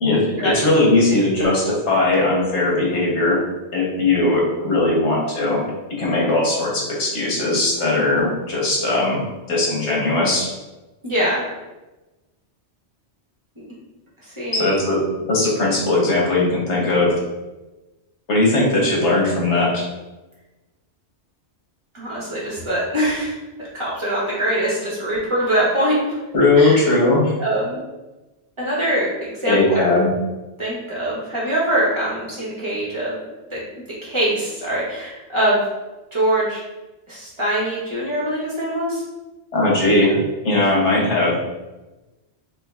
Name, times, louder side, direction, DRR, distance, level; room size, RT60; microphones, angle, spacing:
voice 1, 0.0-3.4 3.7-5.7 6.0-9.2 9.5-10.5 14.5-15.0 15.3-17.2 18.3-19.8 26.3-27.3 29.5-30.1 39.5-41.4, left 2 dB, 80° left, -4 dB, 1.4 m, -19 dB
voice 2, 11.0-11.5 13.6-13.7 14.4-14.8 21.9-23.3 23.6-26.2 26.5-26.8 27.4-27.8 28.6-29.8 30.6-33.2 33.5-33.6 34.0-35.6 36.1-36.6 37.1-39.0, right 1 dB, 25° right, -6 dB, 1.3 m, -23 dB
5.1 x 2.7 x 2.4 m, 1.1 s
omnidirectional pair, 1.2 m